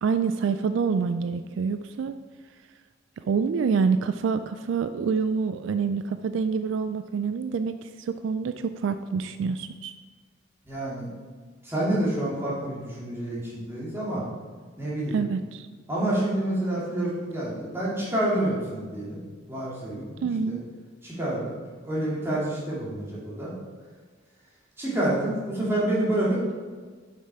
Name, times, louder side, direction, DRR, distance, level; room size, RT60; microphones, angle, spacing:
voice 1, 0.0-2.1 3.3-10.0 15.1-15.7 20.2-20.6, right 5 dB, 70° right, 10 dB, 0.3 m, -27 dB
voice 2, 10.6-11.1 11.6-14.2 14.8-15.2 15.9-19.2 19.5-20.6 21.0-21.5 21.8-23.5 24.8-26.5, right 1 dB, 10° right, -7 dB, 2.3 m, -28 dB
7.3 x 5.9 x 4.7 m, 1.5 s
head